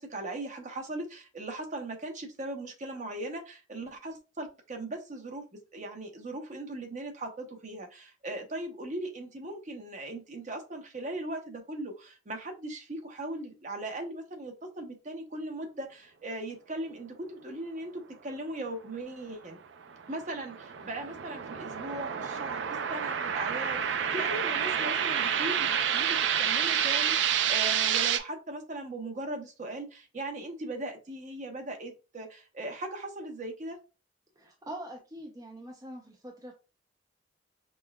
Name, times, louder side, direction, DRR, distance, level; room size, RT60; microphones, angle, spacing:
voice 1, 0.0-19.6 20.1-33.8, right 1 dB, 40° right, 3 dB, 0.8 m, -39 dB
sound 1, 19.8-28.2, right 8 dB, 70° right, 0.4 m, -29 dB
voice 2, 34.4-36.6, right 1 dB, 20° right, 0 dB, 0.5 m, -43 dB
5.3 x 2.2 x 2.2 m, 0.30 s
head